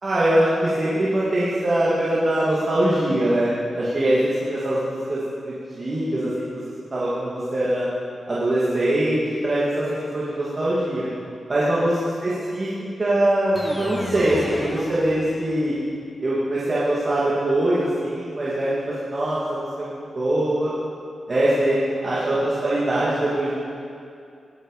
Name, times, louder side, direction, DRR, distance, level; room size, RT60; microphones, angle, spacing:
voice 1, 0.0-5.2 5.4-6.3 6.9-7.9 8.3-11.1 11.5-11.9 12.2-12.7 13.0-15.8 16.2-20.7 21.3-23.5, right 1 dB, 30° right, -9 dB, 2.6 m, -22 dB
sound 1, 13.5-15.9, left 1 dB, 10° left, 1.0 m, -34 dB
20.5 x 9.6 x 5.0 m, 2.4 s
wide cardioid pair, 150°, 0 cm